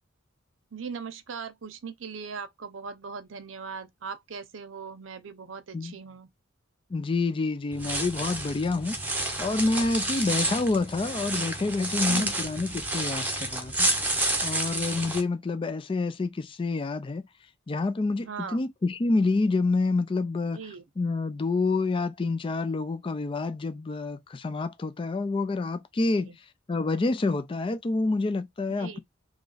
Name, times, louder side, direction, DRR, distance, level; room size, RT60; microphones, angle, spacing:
voice 1, 0.7-6.3 12.0-12.4 18.2-18.6 20.5-20.8 26.2-26.4 28.7-29.0, right 5 dB, 80° right, 0.6 m, -39 dB
voice 2, 6.9-9.0 9.4-13.9 14.4-17.3 17.7-20.6 21.0-26.3 26.7-29.0, left 3 dB, 25° left, 0.3 m, -28 dB
sound 1, 7.7-15.2, right 2 dB, 10° right, 0.7 m, -30 dB
3.0 x 2.4 x 3.9 m
head